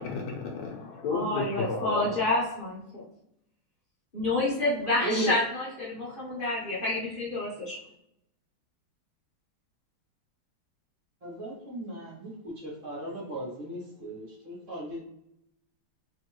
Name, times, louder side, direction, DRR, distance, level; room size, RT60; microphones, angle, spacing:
voice 1, 0.0-2.3, left 4 dB, 80° left, 0 dB, 1.5 m, -33 dB
voice 2, 1.1-3.0 4.1-5.4 5.8-7.7, left 2 dB, 35° left, -7 dB, 0.9 m, -28 dB
voice 3, 5.0-5.3 11.2-15.0, right 1 dB, 20° right, -6 dB, 1.4 m, -35 dB
3.5 x 3.4 x 3.0 m, 0.79 s
omnidirectional pair, 2.4 m